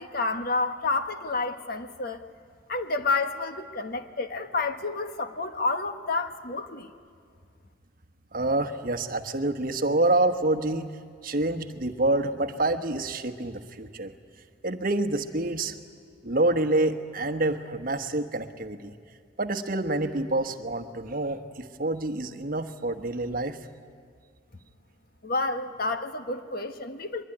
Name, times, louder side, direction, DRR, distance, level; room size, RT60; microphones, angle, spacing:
voice 1, 0.0-2.2 2.7-6.9 25.2-27.2, left 3 dB, 50° left, 8 dB, 1.2 m, -29 dB
voice 2, 8.3-10.9 11.2-14.1 14.6-15.7 16.2-18.9 19.4-23.6, right 2 dB, 50° right, 8 dB, 1.2 m, -27 dB
23.5 x 22.5 x 10.0 m, 2.1 s
head